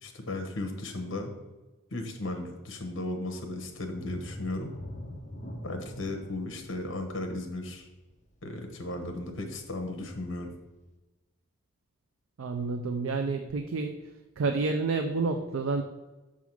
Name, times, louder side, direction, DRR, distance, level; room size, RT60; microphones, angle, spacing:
voice 1, 0.0-1.3 1.9-4.7 5.6-7.9 8.4-10.5, left 2 dB, 70° left, 5 dB, 1.0 m, -35 dB
sound 1, 3.9-9.4 9.8-10.0 10.5-10.6, left 1 dB, 35° left, 0.8 m, -43 dB
voice 2, 12.4-14.0 14.4-15.8, right 4 dB, 85° right, 5 dB, 0.5 m, -29 dB
6.1 x 3.7 x 6.0 m, 1.1 s
head